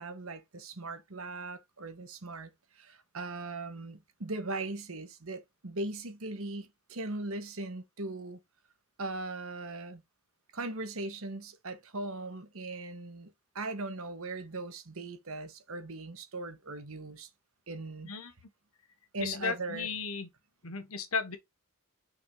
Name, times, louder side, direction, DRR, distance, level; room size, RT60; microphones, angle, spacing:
voice 1, 0.0-8.4 9.0-10.0 10.5-17.3 17.7-18.1 19.1-19.9, right 2 dB, 70° right, 1.3 m, -39 dB
voice 2, 19.2-20.3 20.6-21.4, left 5 dB, 75° left, 1.5 m, -35 dB
5.9 x 3.7 x 4.7 m
head